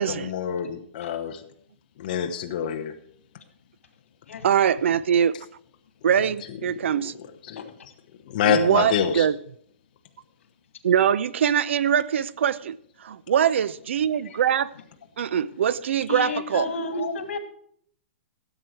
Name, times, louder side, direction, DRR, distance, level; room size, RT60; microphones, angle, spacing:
voice 1, 0.0-1.4 2.0-2.9 6.9-7.1 7.5-7.7 8.3-9.3, left 8 dB, 40° left, 1.1 m, -26 dB
voice 2, 4.4-5.4 6.0-7.1 8.4-9.4 10.8-14.7 15.2-16.7, right 8 dB, 65° right, 0.5 m, -23 dB
voice 3, 16.1-17.4, left 3 dB, 80° left, 2.1 m, -31 dB
14.5 x 8.0 x 4.7 m
hypercardioid pair, 170°, 7 cm